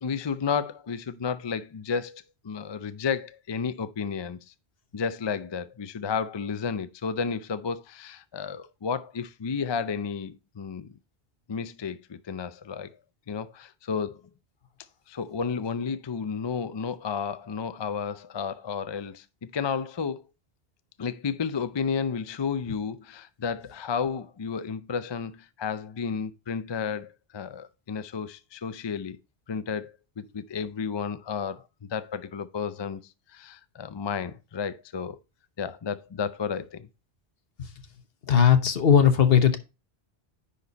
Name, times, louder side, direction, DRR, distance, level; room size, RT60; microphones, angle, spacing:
voice 1, 0.0-4.5 4.9-10.9 11.5-12.9 13.3-14.2 15.1-20.2 21.0-29.2 29.5-35.2 35.6-36.9, left 6 dB, 40° left, 0.4 m, -32 dB
voice 2, 38.3-39.6, left 8 dB, 60° left, 1.2 m, -18 dB
10.0 x 4.3 x 4.0 m
omnidirectional pair, 1.1 m